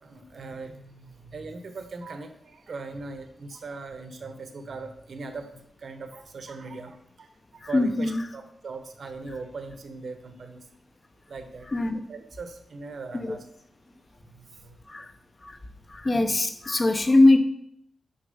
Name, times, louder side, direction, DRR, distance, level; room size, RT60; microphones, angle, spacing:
voice 1, 0.0-5.5 5.8-7.3 7.7-10.6 11.3-11.7 12.1-13.4 14.3-14.8, right 3 dB, 50° right, 7 dB, 0.9 m, -40 dB
voice 2, 7.6-8.2 11.7-12.0 13.2-13.3 14.9-15.1 15.4-15.6 15.9-17.4, left 2 dB, 25° left, 8 dB, 0.7 m, -21 dB
6.5 x 5.8 x 5.4 m, 0.72 s
wide cardioid pair, 140°, 0 cm